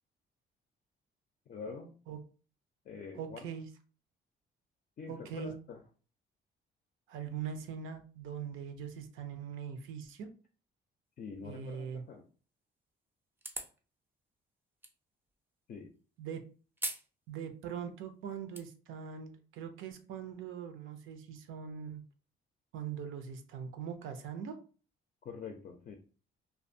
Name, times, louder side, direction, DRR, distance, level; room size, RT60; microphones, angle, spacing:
voice 1, 1.5-1.9 2.9-3.5 5.0-5.8 11.2-12.2 15.7-15.9 25.2-26.0, left 5 dB, 45° left, 4 dB, 0.4 m, -45 dB
voice 2, 3.1-3.7 5.1-5.5 7.1-10.3 11.4-12.0 16.2-16.4 17.3-22.0 22.7-24.6, right 7 dB, 85° right, 8 dB, 0.5 m, -42 dB
sound 1, 13.4-13.8 14.8-14.9 16.8-17.1 17.5-17.6 18.2-18.6, right 1 dB, 10° right, 0.4 m, -39 dB
2.4 x 2.2 x 2.6 m, 0.38 s
cardioid pair, 90°, 20 cm